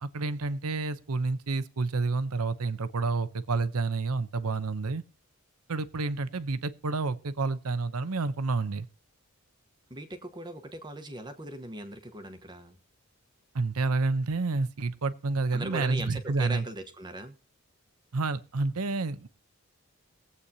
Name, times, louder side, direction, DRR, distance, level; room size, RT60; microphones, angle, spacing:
voice 1, 0.0-5.0 5.7-8.9 13.5-16.7 18.1-19.3, right 3 dB, 90° right, 0.8 m, -29 dB
voice 2, 9.9-12.8 15.5-17.3, right 1 dB, 20° right, 1.1 m, -39 dB
21.5 x 8.2 x 2.8 m
head